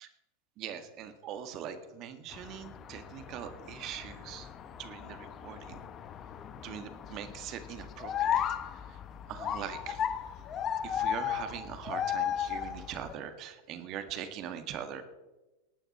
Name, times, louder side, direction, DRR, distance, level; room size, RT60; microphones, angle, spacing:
voice 1, 0.6-4.5 4.8-5.8 6.6-8.4 9.3-10.0 10.8-15.0, right 9 dB, 45° right, 8 dB, 1.6 m, -41 dB
sound 1, 2.3-13.1, left 9 dB, 35° left, 0.9 m, -36 dB
19.0 x 9.0 x 4.3 m, 1.1 s
hypercardioid pair, 95°, 0 cm